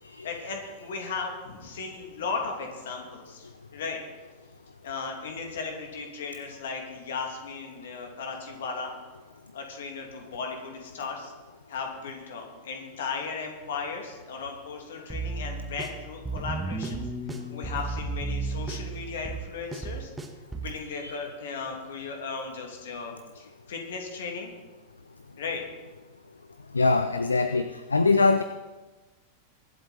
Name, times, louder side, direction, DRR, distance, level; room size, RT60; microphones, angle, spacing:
voice 1, 0.2-4.0 4.8-8.9 9.5-11.3 11.7-20.1 20.5-24.5 25.4-25.6, left 4 dB, 60° left, 2 dB, 2.7 m, -36 dB
sound 1, 15.1-20.8, right 3 dB, 10° right, 1.5 m, -34 dB
voice 2, 26.7-28.4, left 3 dB, 75° left, 12 dB, 0.5 m, -23 dB
22.5 x 7.9 x 4.4 m, 1.2 s
figure-of-eight pair, 90°, 0 cm